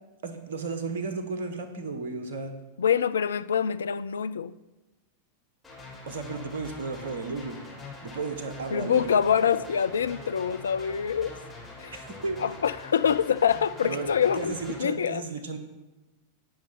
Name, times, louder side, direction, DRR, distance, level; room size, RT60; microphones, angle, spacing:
voice 1, 0.2-2.5 6.1-7.6 8.0-9.2 11.9-12.4 13.8-14.1 14.3-15.6, right 4 dB, 60° right, 1.4 m, -34 dB
voice 2, 2.8-4.5 8.7-11.3 11.8-11.9 12.4-15.2, left 8 dB, 70° left, 0.4 m, -25 dB
sound 1, 5.6-14.8, left 2 dB, 10° left, 4.6 m, -44 dB
18.0 x 6.3 x 4.4 m
figure-of-eight pair, 90°, 0 cm